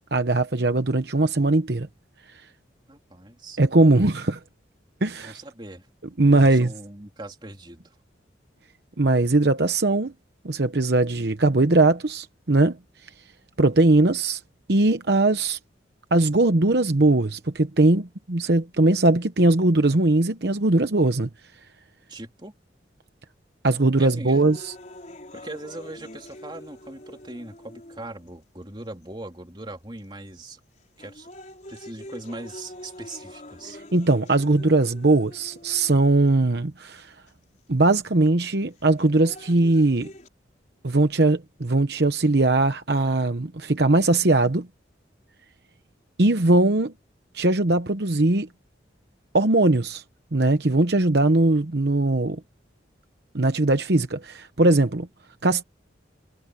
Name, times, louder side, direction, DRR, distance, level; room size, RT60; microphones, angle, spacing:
voice 1, 0.1-1.9 3.6-4.4 5.0-5.4 6.2-6.7 9.0-10.1 10.4-12.8 13.6-14.4 14.7-15.6 16.1-21.3 23.6-24.7 33.9-37.1 37.7-40.1 40.8-44.7 46.2-46.9 47.3-48.5 49.3-50.0 50.3-52.4 53.3-55.1 55.4-55.6, right 2 dB, 60° right, 1.0 m, -20 dB
voice 2, 2.9-3.6 5.2-5.9 6.3-8.0 22.1-22.5 24.0-24.4 25.3-30.6 31.0-31.3 31.7-33.8, right 2 dB, 25° right, 3.0 m, -40 dB
sound 1, 24.3-28.3 29.0-29.1 30.0-30.3 30.8-36.3 37.3-37.4 38.8-40.3, left 1 dB, 40° left, 5.2 m, -44 dB
head